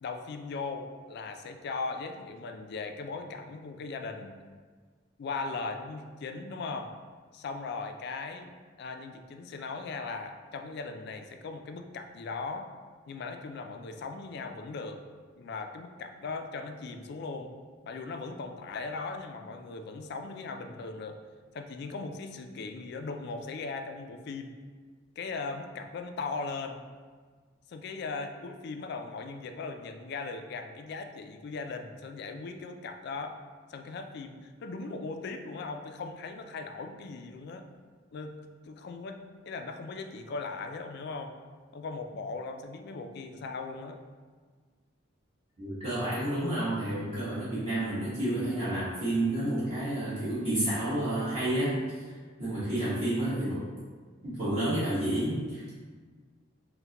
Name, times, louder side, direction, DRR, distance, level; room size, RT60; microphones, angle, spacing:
voice 1, 0.0-4.4 5.2-6.9 7.3-12.7 13.1-15.0 15.4-17.5 17.8-21.2 21.5-24.5 25.2-26.8 27.7-33.4 33.7-37.7 38.1-38.3 38.6-41.3 41.7-44.0, left 4 dB, 55° left, 6 dB, 0.3 m, -38 dB
voice 2, 45.6-51.8 52.4-53.6 54.2-55.7, right 1 dB, 35° right, -13 dB, 1.3 m, -30 dB
5.6 x 2.2 x 2.9 m, 1.5 s
head